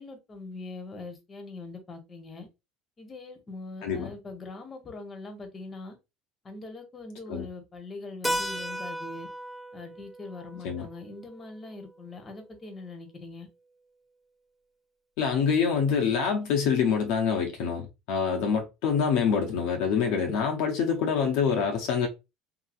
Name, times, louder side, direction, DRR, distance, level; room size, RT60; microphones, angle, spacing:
voice 1, 0.0-2.5 3.0-6.0 6.4-9.3 9.7-13.5, left 3 dB, 30° left, 0.9 m, -42 dB
Keyboard (musical), 8.2-12.7, equal, 5° left, 0.4 m, -36 dB
voice 2, 15.2-22.1, left 6 dB, 70° left, 0.6 m, -26 dB
2.7 x 2.7 x 2.4 m
hypercardioid pair, 80°, 0 cm